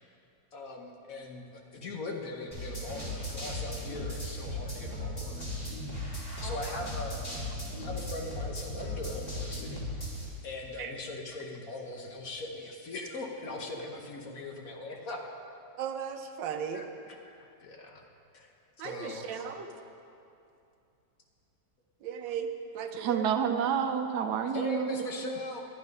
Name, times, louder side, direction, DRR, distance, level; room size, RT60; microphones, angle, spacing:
voice 1, 0.5-1.4 1.7-5.5 6.4-7.2 7.8-9.8 10.1-15.2 16.7-18.0 18.3-18.5 18.8-19.4 24.5-25.6, left 2 dB, 55° left, 1 dB, 1.4 m, -40 dB
sound 1, 2.5-10.2, left 1 dB, 30° left, 2.7 m, -37 dB
voice 2, 6.4-6.8 10.8-10.9 15.8-16.8 18.8-19.7 22.0-23.5, right 7 dB, 90° right, 6 dB, 1.5 m, -37 dB
voice 3, 22.9-25.0, right 8 dB, 70° right, 7 dB, 1.1 m, -29 dB
11.0 x 9.7 x 5.4 m, 2.6 s
omnidirectional pair, 1.9 m